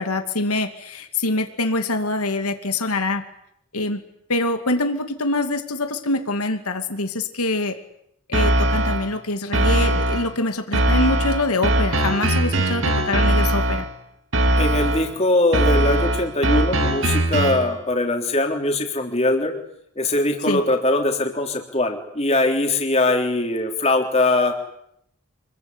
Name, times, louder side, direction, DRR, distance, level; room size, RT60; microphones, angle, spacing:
voice 1, 0.0-3.2 3.7-4.0 4.3-7.8 8.3-13.9 20.5-20.6, left 2 dB, 90° left, 7 dB, 2.5 m, -24 dB
sound 1, 8.3-9.1 9.5-10.3 10.7-13.9 14.3-15.1 15.5-17.7, right 1 dB, 60° right, 2.5 m, -20 dB
voice 2, 14.6-19.5 20.0-24.5, left 2 dB, 30° left, 3 dB, 3.6 m, -21 dB
26.5 x 22.5 x 9.8 m, 0.75 s
head